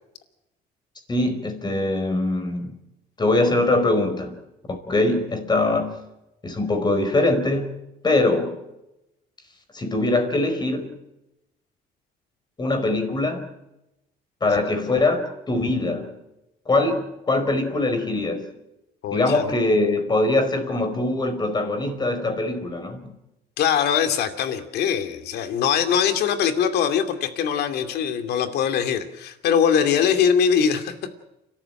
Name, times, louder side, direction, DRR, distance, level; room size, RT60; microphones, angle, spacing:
voice 1, 1.1-2.8 3.2-4.4 4.7-6.0 6.4-7.7 8.0-8.6 9.7-10.9 12.6-13.5 14.4-16.2 16.7-18.5 19.1-23.1, left 2 dB, 25° left, 7 dB, 4.9 m, -22 dB
voice 2, 19.0-19.5 23.6-30.9, left 7 dB, 75° left, 7 dB, 2.6 m, -22 dB
29.5 x 13.5 x 9.0 m, 0.93 s
cardioid pair, 110°, 17 cm